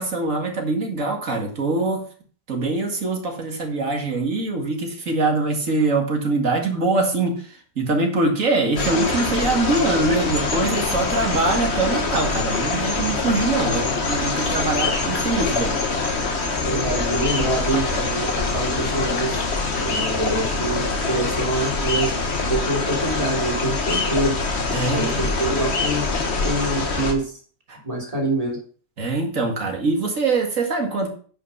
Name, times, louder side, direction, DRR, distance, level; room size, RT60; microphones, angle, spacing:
voice 1, 0.0-2.0 2.5-13.8 14.1-15.8 24.7-25.2 27.7-27.8 29.0-31.1, right 3 dB, 85° right, 2 dB, 2.4 m, -23 dB
sound 1, 8.8-27.1, left 3 dB, 55° left, 1.7 m, -24 dB
voice 2, 16.7-19.4 19.8-22.1 22.5-24.4 24.9-27.3 27.8-28.6, right 2 dB, 30° right, -1 dB, 3.1 m, -25 dB
9.6 x 5.8 x 5.5 m, 0.43 s
omnidirectional pair, 1.3 m